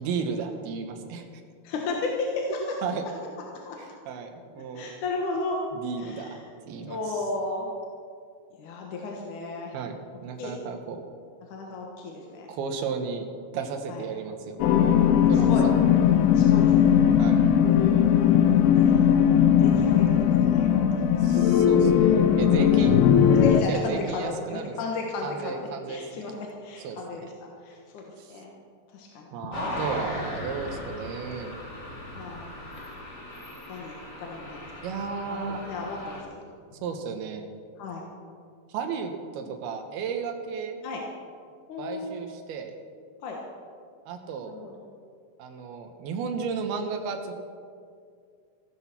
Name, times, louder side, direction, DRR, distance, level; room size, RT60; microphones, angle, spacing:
voice 1, 0.0-1.4 2.8-3.0 3.8-4.9 5.7-6.4 6.7-7.0 9.7-11.0 12.5-13.3 13.5-14.6 15.3-15.5 17.2-17.5 21.2-23.0 23.7-24.7 25.2-26.0 26.8-27.0 28.2-28.4 29.3-31.5 34.8-35.6 36.8-37.5 38.7-40.8 41.8-42.7 44.1-44.5 45.4-47.3, right 5 dB, 70° right, 5 dB, 2.9 m, -33 dB
voice 2, 1.6-2.6 3.6-3.8 4.7-5.6 6.0-6.4 6.9-7.7 8.5-9.7 10.4-10.5 11.5-12.5 13.9-14.0 15.3-15.7 16.3-17.0 17.9-18.4 18.7-19.2 19.6-21.4 23.4-25.6 25.9-27.3 27.6-28.5 28.9-29.3 29.7-30.1 30.6-30.8 32.1-32.4 33.7-34.9 35.3-36.4 37.8-38.0 40.8-41.0 41.7-42.1 43.2-43.4 44.4-44.7, left 3 dB, 65° left, -1 dB, 2.2 m, -34 dB
sound 1, 14.6-23.6, left 9 dB, 85° left, 2.2 m, -19 dB
sound 2, 29.5-36.2, left 1 dB, 30° left, 2.1 m, -37 dB
15.5 x 12.5 x 6.0 m, 2.2 s
omnidirectional pair, 5.2 m